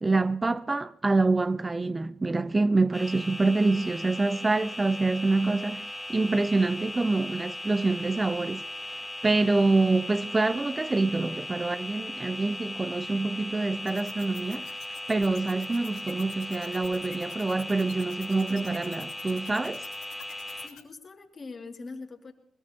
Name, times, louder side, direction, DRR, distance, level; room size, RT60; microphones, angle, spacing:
voice 1, 0.0-14.8 15.1-19.9, right 3 dB, 25° right, 0.5 m, -26 dB
sound 1, 2.9-20.7, left 1 dB, 10° left, 3.8 m, -38 dB
sound 2, 13.9-20.8, left 9 dB, 90° left, 2.9 m, -48 dB
voice 2, 20.6-22.3, left 3 dB, 45° left, 2.5 m, -42 dB
21.5 x 20.5 x 2.9 m
cardioid pair, 65°, 0 cm